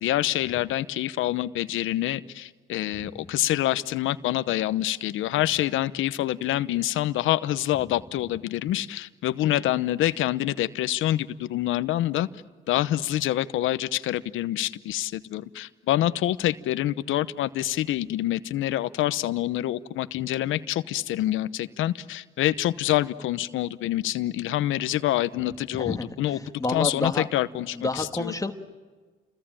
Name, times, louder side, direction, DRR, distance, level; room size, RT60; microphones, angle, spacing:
voice 1, 0.0-12.3 12.7-26.4 26.7-28.3, left 14 dB, 85° left, 14 dB, 0.9 m, -26 dB
voice 2, 25.7-27.3 27.7-28.5, left 2 dB, 15° left, 6 dB, 1.6 m, -30 dB
29.5 x 21.5 x 9.0 m, 1.3 s
cardioid pair, 90°, 20 cm